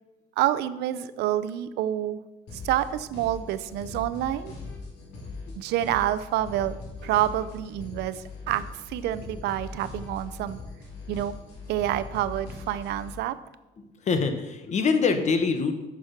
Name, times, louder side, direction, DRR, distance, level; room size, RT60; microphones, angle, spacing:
voice 1, 0.4-2.2 2.5-4.5 5.5-10.6 11.1-11.4 11.7-13.4, right 12 dB, 80° right, 14 dB, 0.5 m, -28 dB
sound 1, 2.5-13.1, left 3 dB, 80° left, 3.0 m, -41 dB
voice 2, 13.8-15.7, left 5 dB, 45° left, 8 dB, 1.2 m, -25 dB
8.7 x 6.1 x 5.8 m, 1.0 s
cardioid pair, 110°, 17 cm